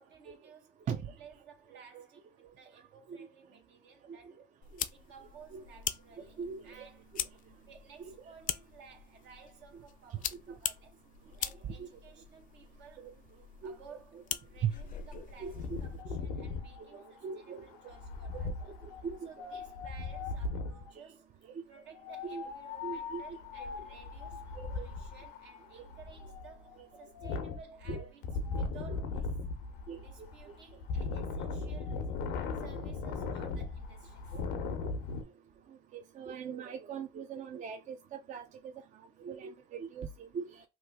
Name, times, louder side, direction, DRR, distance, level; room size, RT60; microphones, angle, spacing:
voice 1, 0.0-0.9 1.2-4.4 4.9-7.2 7.6-11.1 11.4-13.2 13.6-18.7 19.2-21.4 21.7-29.4 29.9-32.2 32.5-34.3, right 6 dB, 75° right, 1.1 m, -56 dB
voice 2, 1.7-2.0 3.1-3.3 4.1-4.2 5.5-5.6 6.2-6.9 8.0-8.1 9.7-9.8 10.5-10.6 11.8-11.9 13.0-13.1 13.6-13.8 14.6-14.7 15.1-15.8 16.1-16.2 16.9-17.7 18.3-18.4 18.8-19.5 21.4-21.6 22.2-22.4 22.8-23.4 24.6-24.9 25.7-25.8 26.8-26.9 27.2-27.3 27.9-28.1 28.9-29.0 29.9-30.3 34.3-34.4 34.8-34.9 35.9-40.7, right 7 dB, 40° right, 0.4 m, -41 dB
sound 1, 4.6-16.0, left 9 dB, 45° left, 0.4 m, -42 dB
Wind, 15.5-20.9 22.0-35.2, left 4 dB, 85° left, 0.7 m, -38 dB
3.0 x 2.2 x 3.5 m
supercardioid pair, 80°, 19 cm